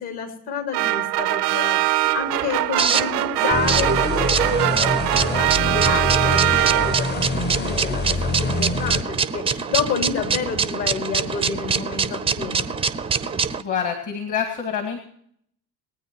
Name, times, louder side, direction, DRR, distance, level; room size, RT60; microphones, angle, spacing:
voice 1, 0.0-12.7, left 6 dB, 55° left, 2 dB, 3.4 m, -30 dB
sound 1, 0.7-7.3, right 16 dB, 70° right, 0.5 m, -22 dB
sound 2, 2.0-13.6, right 6 dB, 10° right, 0.5 m, -25 dB
sound 3, 3.5-9.0, left 3 dB, 20° left, 0.9 m, -26 dB
voice 2, 13.6-15.0, left 7 dB, 35° left, 5 dB, 2.0 m, -26 dB
20.0 x 9.4 x 4.6 m, 0.67 s
figure-of-eight pair, 65°, 49 cm